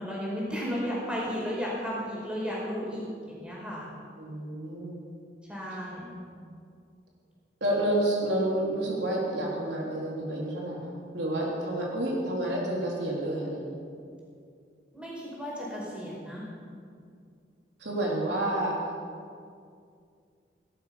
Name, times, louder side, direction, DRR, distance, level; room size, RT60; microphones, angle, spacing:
voice 1, 0.0-3.9 5.5-6.2 14.9-16.5, equal, 5° right, -6 dB, 5.0 m, -34 dB
voice 2, 4.2-5.0 7.6-10.9 11.1-13.8 17.8-18.8, right 1 dB, 80° right, -3 dB, 3.8 m, -29 dB
17.5 x 12.5 x 6.0 m, 2.3 s
head